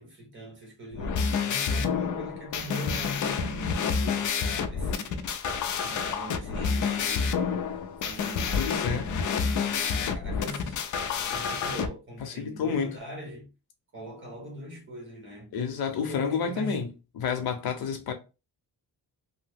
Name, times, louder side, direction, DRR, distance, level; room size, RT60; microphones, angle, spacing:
voice 1, 0.0-5.4 5.8-13.5 13.9-15.5 16.1-16.9, left 1 dB, 30° right, 1.3 m, -41 dB
sound 1, 0.9-11.9, left 6 dB, 55° left, 0.5 m, -29 dB
Car / Engine, 4.0-11.4, left 4 dB, 55° right, 1.3 m, -43 dB
voice 2, 8.5-9.1 12.2-12.9 15.5-16.9 17.1-18.1, left 6 dB, 80° left, 0.8 m, -29 dB
2.7 x 2.1 x 3.3 m
cardioid pair, 160°, 37 cm